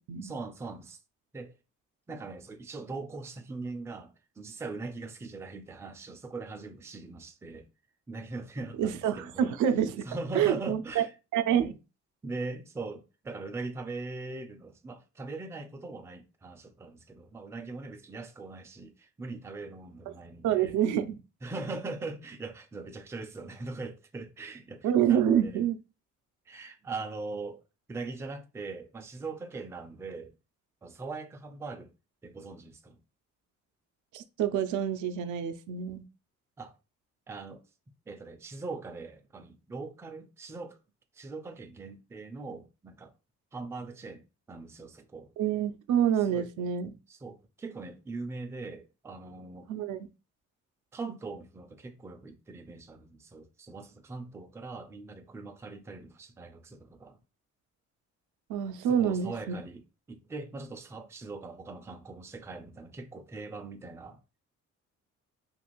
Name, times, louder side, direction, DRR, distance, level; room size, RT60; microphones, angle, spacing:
voice 1, 0.2-1.0 1.3-1.6 2.1-7.7 8.1-9.5 10.0-11.1 12.2-20.7 21.4-25.6 26.5-27.6 27.9-30.3 30.8-31.9 32.2-33.0 36.6-36.7 37.3-37.6 38.1-40.8 41.1-43.1 43.5-45.3 46.2-46.5 47.1-49.7 50.9-57.2 58.8-59.8 60.1-64.2, right 3 dB, 10° right, 0.3 m, -41 dB
voice 2, 8.8-10.1 10.3-11.0 11.3-11.8 20.4-21.2 24.8-25.8 34.1-36.0 45.4-46.9 49.7-50.1 58.5-59.5, right 9 dB, 75° right, 0.4 m, -27 dB
2.5 x 2.4 x 3.0 m
cardioid pair, 95°, 30 cm